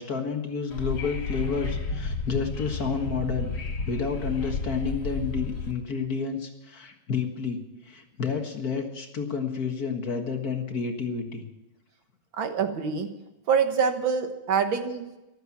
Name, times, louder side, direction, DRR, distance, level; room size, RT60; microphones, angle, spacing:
voice 1, 0.0-3.5 3.9-7.6 7.8-11.4, left 5 dB, 45° left, 4 dB, 2.0 m, -30 dB
Wind / Subway metro underground, 0.7-5.7, left 3 dB, 65° left, 3.3 m, -32 dB
voice 2, 12.4-13.1 13.5-15.2, right 6 dB, 70° right, 7 dB, 2.0 m, -25 dB
14.5 x 12.5 x 7.2 m, 0.98 s
omnidirectional pair, 2.3 m